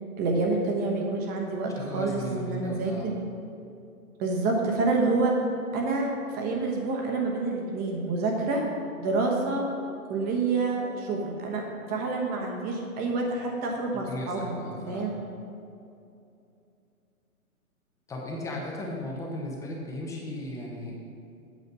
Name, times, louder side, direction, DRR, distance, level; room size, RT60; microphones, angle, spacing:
voice 1, 0.2-3.1 4.2-5.3 5.7-8.6 9.0-9.6 10.1-11.6 11.9-14.6 14.9-15.2, right 3 dB, 20° right, 0 dB, 1.1 m, -28 dB
voice 2, 1.7-3.1 13.9-15.1 18.1-21.0, left 1 dB, 5° left, -1 dB, 0.9 m, -36 dB
8.3 x 6.4 x 5.4 m, 2.6 s
figure-of-eight pair, 125°, 44 cm